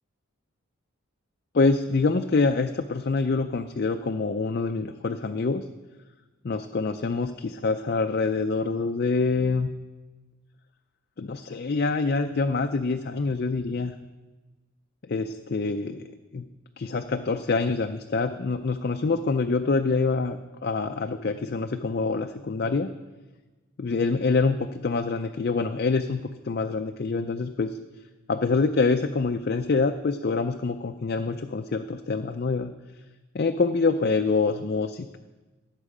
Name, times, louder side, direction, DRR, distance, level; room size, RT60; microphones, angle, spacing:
voice 1, 1.5-5.6 6.4-9.7 11.2-13.9 15.0-16.4 16.8-22.9 23.8-27.8 28.3-32.7 33.3-35.2, left 4 dB, 45° left, 6 dB, 0.4 m, -26 dB
16.0 x 7.5 x 4.9 m, 1.2 s
head